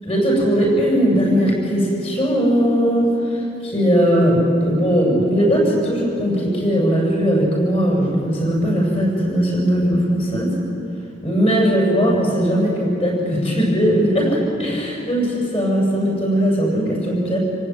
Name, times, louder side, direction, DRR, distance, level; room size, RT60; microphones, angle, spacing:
voice 1, 0.0-10.5 11.2-17.4, equal, 30° left, -3 dB, 7.4 m, -19 dB
27.5 x 17.5 x 9.4 m, 2.9 s
head